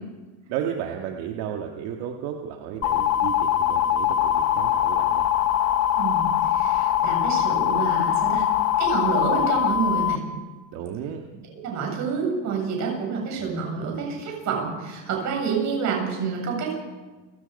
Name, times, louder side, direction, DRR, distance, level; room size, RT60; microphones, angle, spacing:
voice 1, 0.5-5.3 10.7-11.2, right 9 dB, 65° right, 2 dB, 1.9 m, -33 dB
sound 1, 2.8-10.2, left 10 dB, 35° left, 0.9 m, -22 dB
voice 2, 6.0-8.4 8.8-10.2 11.6-16.7, right 5 dB, 40° right, 0 dB, 7.7 m, -28 dB
30.0 x 17.0 x 5.4 m, 1.2 s
cardioid pair, 180°, 43 cm